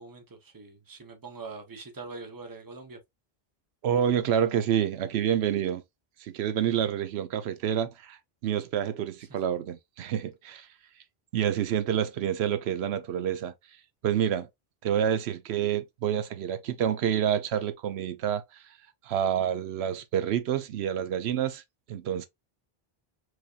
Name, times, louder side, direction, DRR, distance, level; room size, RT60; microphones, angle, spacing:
voice 1, 0.0-3.0, right 4 dB, 20° right, 0.8 m, -43 dB
voice 2, 3.8-5.8 6.2-8.2 8.4-10.7 11.3-13.5 14.0-14.5 14.8-18.4 19.1-21.6 21.9-22.3, right 9 dB, 90° right, 0.9 m, -28 dB
4.8 x 2.7 x 2.3 m
omnidirectional pair, 1.0 m